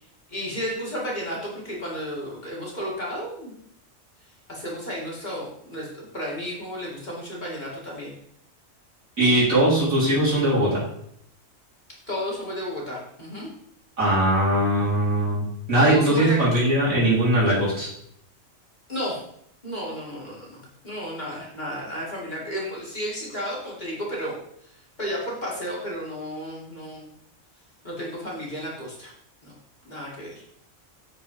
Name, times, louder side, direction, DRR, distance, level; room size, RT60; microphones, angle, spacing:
voice 1, 0.3-3.5 4.5-8.1 12.1-13.5 15.8-16.6 18.9-19.2 19.6-24.4 24.6-24.7 25.0-27.1 27.8-29.1 29.4-29.5 29.8-30.4, equal, 35° left, -4 dB, 2.5 m, -32 dB
voice 2, 9.2-10.8 14.0-15.4 15.7-17.9, right 1 dB, 85° right, -8 dB, 4.1 m, -20 dB
7.9 x 4.6 x 4.9 m, 0.70 s
omnidirectional pair, 1.4 m